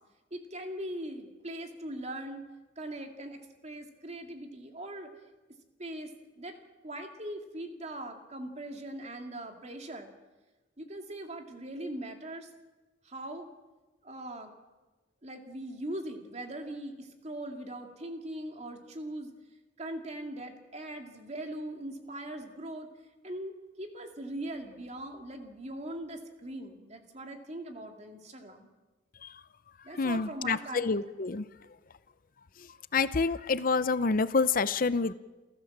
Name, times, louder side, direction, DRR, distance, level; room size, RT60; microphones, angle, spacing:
voice 1, 0.3-2.4 2.8-5.1 5.8-6.1 6.4-6.6 6.8-10.1 10.8-12.5 13.0-13.5 14.0-14.5 15.2-19.3 19.8-22.9 23.2-28.7 29.8-30.9, right 1 dB, 40° right, 4 dB, 2.4 m, -40 dB
voice 2, 30.0-31.4 32.9-35.1, left 4 dB, 50° left, 15 dB, 0.6 m, -27 dB
28.5 x 14.0 x 7.3 m, 1.2 s
head